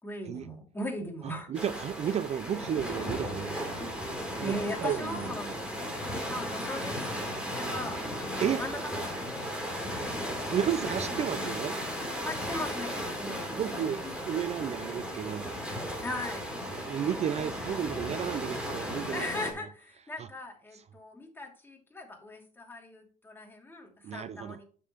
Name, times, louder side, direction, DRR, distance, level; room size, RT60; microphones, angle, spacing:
voice 1, 0.0-1.5 4.4-5.5 6.3-10.1 12.0-14.1 16.0-16.4 19.1-24.6, left 1 dB, 10° left, 2.7 m, -39 dB
voice 2, 1.2-3.9 4.3-5.3 8.4-8.6 10.5-11.8 13.5-15.6 16.7-19.2 20.2-20.3 20.7-20.8 24.0-24.6, right 9 dB, 40° right, 0.4 m, -33 dB
sound 1, 1.5-19.5, equal, 5° right, 3.4 m, -35 dB
9.8 x 6.8 x 3.0 m
cardioid pair, 110°, 17 cm